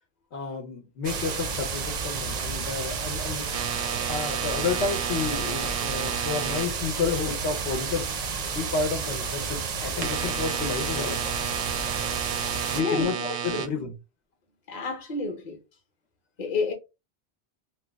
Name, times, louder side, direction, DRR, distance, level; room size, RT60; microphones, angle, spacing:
voice 1, 0.3-3.4 4.1-8.1 8.5-11.3 12.7-14.0, left 5 dB, 90° left, 1.1 m, -31 dB
sound 1, 1.0-12.8, right 5 dB, 50° right, 0.5 m, -31 dB
sound 2, 3.5-6.7 10.0-13.7, right 8 dB, 80° right, 0.8 m, -32 dB
voice 2, 12.7-13.6 14.7-15.6 16.4-16.7, left 4 dB, 45° left, 1.0 m, -30 dB
3.1 x 2.1 x 3.4 m
omnidirectional pair, 1.1 m